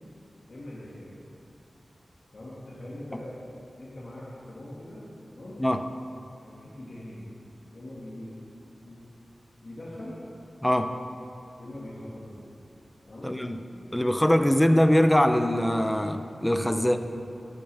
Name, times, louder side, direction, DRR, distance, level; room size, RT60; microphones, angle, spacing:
voice 1, 0.5-1.1 2.3-3.4 3.8-5.0 5.3-5.6 6.4-7.3 7.7-8.4 8.8-9.1 9.6-10.2 11.6-12.5 13.1-13.4 16.7-17.2, left 1 dB, 55° left, -8 dB, 1.8 m, -42 dB
voice 2, 10.6-10.9 13.2-13.6 13.9-17.0, equal, 10° left, 8 dB, 0.4 m, -22 dB
12.0 x 6.8 x 3.4 m, 3.0 s
wide cardioid pair, 95°, 0 cm